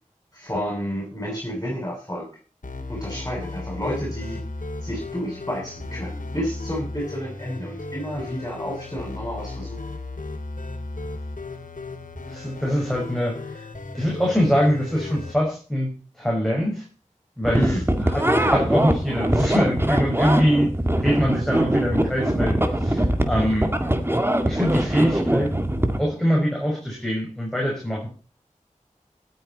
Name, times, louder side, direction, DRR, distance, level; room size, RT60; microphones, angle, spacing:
voice 1, 0.3-2.3 2.9-4.4 4.8-9.8 17.5-17.9 18.2-18.6, equal, 20° left, -2 dB, 7.3 m, -30 dB
sound 1, 2.6-15.3, left 2 dB, 85° left, 2.8 m, -35 dB
voice 2, 12.3-13.7 13.9-16.8 17.4-20.7 21.0-23.7 24.5-25.5 26.0-28.1, equal, 5° left, -2 dB, 6.0 m, -23 dB
sound 2, 17.4-26.0, right 1 dB, 20° right, 2.0 m, -22 dB
19.5 x 9.2 x 4.2 m, 0.37 s
wide cardioid pair, 55°, 13 cm